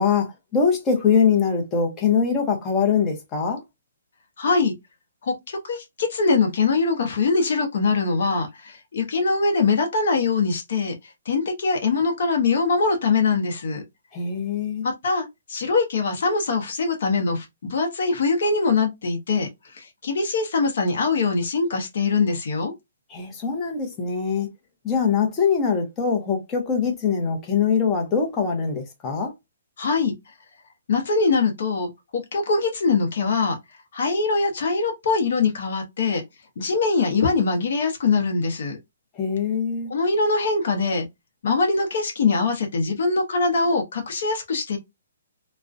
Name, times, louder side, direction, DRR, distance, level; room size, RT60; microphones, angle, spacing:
voice 1, 0.0-3.6 14.1-14.8 23.1-24.5 24.8-29.3 39.2-39.9, left 6 dB, 20° left, 0.7 m, -23 dB
voice 2, 4.4-4.7 5.2-10.9 11.3-13.8 14.8-19.5 19.8-22.7 29.8-30.1 30.9-33.6 33.9-36.2 36.6-38.8 39.9-41.1 41.4-44.8, left 4 dB, 65° left, 0.7 m, -22 dB
2.4 x 2.1 x 2.4 m
hypercardioid pair, 155°, 0 cm